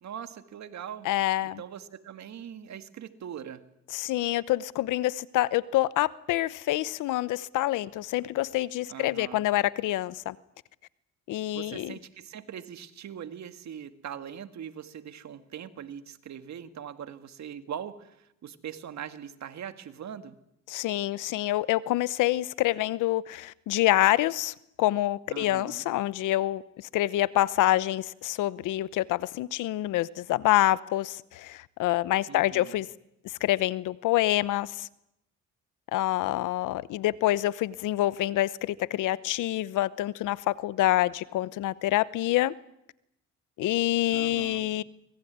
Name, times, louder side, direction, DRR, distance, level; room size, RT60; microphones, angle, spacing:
voice 1, 0.0-1.1 1.4-3.7 8.9-9.5 11.5-20.4 25.3-25.9 32.3-32.7 44.1-44.7, right 9 dB, 65° right, 2.1 m, -41 dB
voice 2, 1.0-1.6 3.9-10.3 11.3-11.9 20.7-32.9 33.2-34.9 35.9-42.5 43.6-44.8, left 15 dB, 90° left, 0.9 m, -27 dB
25.0 x 20.5 x 9.5 m
cardioid pair, 90°, 30 cm